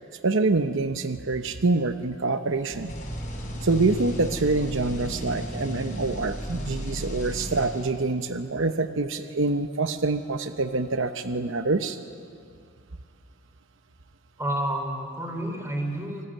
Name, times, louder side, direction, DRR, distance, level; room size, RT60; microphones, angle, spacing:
voice 1, 0.2-2.9 3.6-12.0, right 3 dB, 65° right, 9 dB, 0.9 m, -26 dB
sound 1, 2.7-8.2, equal, 35° left, 5.4 m, -34 dB
voice 2, 14.4-16.3, right 1 dB, 15° right, 3 dB, 4.1 m, -30 dB
26.0 x 19.0 x 9.0 m, 2.3 s
head